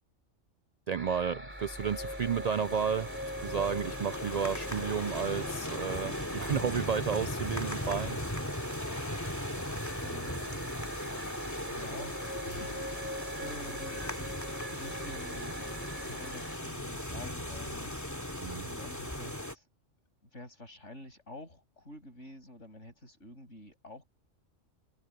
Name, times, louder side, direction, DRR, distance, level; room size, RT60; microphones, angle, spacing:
voice 1, 0.9-3.1 3.4-8.2 18.4-18.7, right 7 dB, 85° right, 0.3 m, -32 dB
sound 1, 1.0-16.6, equal, 10° right, 2.8 m, -43 dB
sound 2, 1.6-19.5, left 1 dB, 15° left, 2.6 m, -38 dB
voice 2, 10.0-10.4 11.2-14.3 14.7-15.6 16.0-17.9 18.6-19.7 20.3-24.0, left 1 dB, 75° left, 7.9 m, -49 dB
omnidirectional pair, 1.3 m